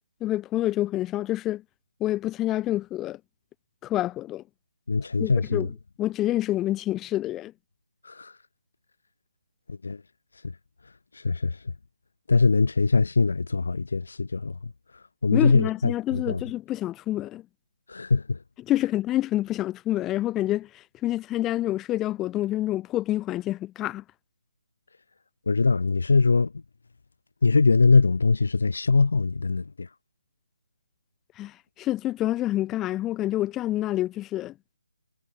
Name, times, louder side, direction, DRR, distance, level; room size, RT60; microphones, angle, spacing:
voice 1, 0.2-1.6 2.0-3.2 3.8-4.4 5.2-5.7 6.0-7.5 15.3-17.4 18.7-24.0 31.4-34.5, left 14 dB, 15° left, 7.8 m, -27 dB
voice 2, 4.9-5.7 8.0-8.3 9.7-10.0 10.4-10.5 11.1-11.6 12.3-14.7 15.2-16.4 17.9-18.4 25.5-26.6 27.4-29.9, left 4 dB, 60° left, 6.7 m, -22 dB
figure-of-eight pair, 150°, 0 cm